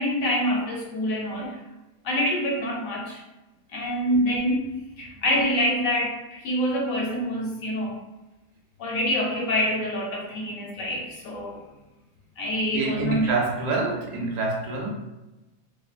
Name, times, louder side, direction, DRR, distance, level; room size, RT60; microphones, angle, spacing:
voice 1, 0.0-1.6 2.0-3.2 3.7-4.7 5.0-8.0 8.8-11.6 12.4-13.3, equal, 70° left, -2 dB, 0.9 m, -26 dB
voice 2, 12.7-14.9, right 3 dB, 75° right, -1 dB, 1.0 m, -26 dB
2.6 x 2.6 x 2.3 m, 1.0 s
omnidirectional pair, 1.7 m